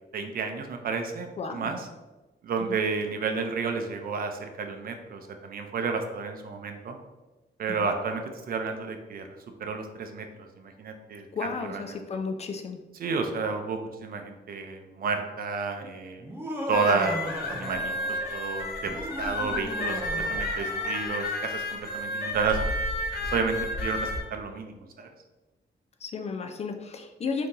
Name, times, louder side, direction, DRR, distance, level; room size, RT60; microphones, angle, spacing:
voice 1, 0.1-1.9 2.4-7.0 7.6-9.3 9.6-12.0 12.9-16.3 16.7-22.8 23.3-25.1, right 4 dB, 55° right, 5 dB, 0.5 m, -31 dB
voice 2, 1.4-1.7 2.7-2.8 7.7-7.9 11.3-12.8 26.0-27.5, left 4 dB, 40° left, 5 dB, 0.4 m, -33 dB
Laughter, 16.2-18.3 18.8-21.2, equal, 10° right, 0.6 m, -37 dB
sound 1, 16.7-24.2, left 1 dB, 60° left, 0.7 m, -31 dB
4.0 x 2.8 x 3.7 m, 1.1 s
wide cardioid pair, 155°, 18 cm